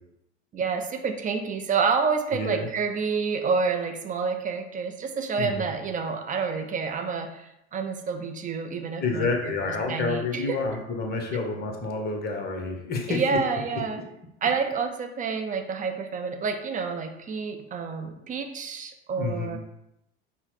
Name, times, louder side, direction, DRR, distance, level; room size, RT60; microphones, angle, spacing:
voice 1, 0.5-9.5 9.9-10.6 13.1-14.0 14.4-19.6, right 5 dB, 25° right, 5 dB, 0.4 m, -28 dB
voice 2, 2.3-2.7 5.4-5.7 9.0-13.4 19.2-19.6, left 3 dB, 30° left, 3 dB, 0.9 m, -29 dB
5.4 x 2.1 x 3.0 m, 0.82 s
hypercardioid pair, 80°, 35 cm